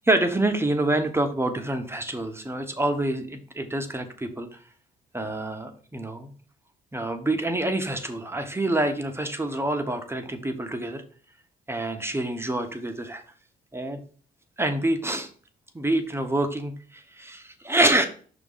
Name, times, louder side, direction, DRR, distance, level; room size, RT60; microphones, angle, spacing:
voice 1, 0.1-4.6 5.1-6.3 6.9-11.0 11.7-13.2 13.7-14.0 14.6-15.3 15.7-18.1, right 1 dB, 10° right, 5 dB, 1.0 m, -26 dB
6.0 x 3.7 x 5.5 m, 0.43 s
cardioid pair, 90°, 20 cm